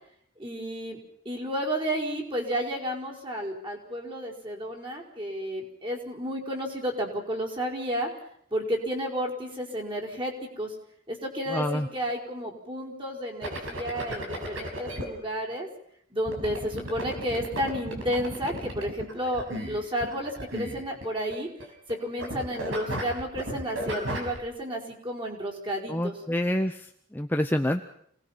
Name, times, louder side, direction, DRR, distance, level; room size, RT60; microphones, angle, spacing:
voice 1, 0.4-1.0 1.2-8.1 8.5-10.7 11.1-15.7 16.1-21.5 22.0-26.2, equal, 25° right, -2 dB, 4.9 m, -32 dB
voice 2, 11.5-11.9 25.9-27.8, left 1 dB, 10° left, 5 dB, 0.8 m, -27 dB
sound 1, 13.4-15.1 16.3-21.9 22.2-24.4, equal, 85° right, 5.8 m, -35 dB
28.0 x 19.5 x 5.9 m, 0.67 s
head